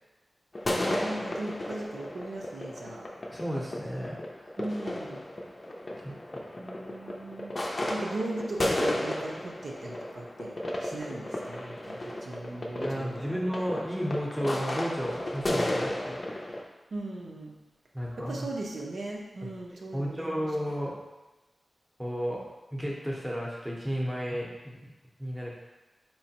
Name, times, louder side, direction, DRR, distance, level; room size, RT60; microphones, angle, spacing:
sound 1, 0.5-16.6, left 1 dB, 35° left, 0.5 m, -34 dB
voice 1, 0.7-3.1 4.6-5.2 6.6-10.5 10.8-13.4 16.9-17.5 18.3-20.5, right 2 dB, 80° right, -2 dB, 0.6 m, -38 dB
voice 2, 3.3-4.5 6.0-6.5 12.8-16.5 17.9-18.5 19.9-21.0 22.0-22.4 22.7-24.9 25.2-25.5, equal, 5° right, -3 dB, 0.7 m, -33 dB
4.3 x 3.1 x 2.8 m, 1.1 s
wide cardioid pair, 125°, 0 cm